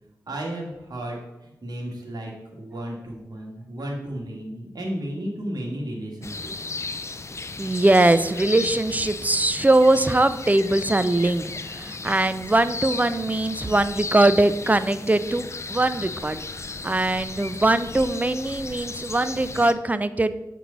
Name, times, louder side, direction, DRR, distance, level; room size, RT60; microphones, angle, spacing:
voice 1, 0.3-2.3 2.6-6.5, right 1 dB, 70° right, -1 dB, 1.8 m, -33 dB
sound 1, 6.2-19.7, left 3 dB, 40° left, 0.4 m, -35 dB
voice 2, 7.6-16.4 16.8-20.4, right 2 dB, 20° right, 13 dB, 0.5 m, -21 dB
7.9 x 4.6 x 4.0 m, 0.98 s
cardioid pair, 50°, 7 cm